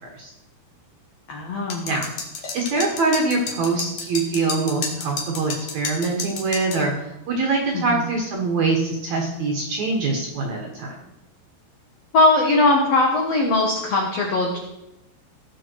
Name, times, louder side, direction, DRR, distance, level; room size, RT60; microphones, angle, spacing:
voice 1, 1.3-1.9 7.7-8.0 12.1-14.6, left 2 dB, 90° left, -1 dB, 1.4 m, -20 dB
sound 1, 1.7-6.8, left 4 dB, 60° left, 1.7 m, -31 dB
voice 2, 2.5-6.9 7.3-11.0, right 3 dB, 60° right, 1 dB, 2.0 m, -24 dB
17.5 x 6.4 x 4.6 m, 0.92 s
omnidirectional pair, 5.2 m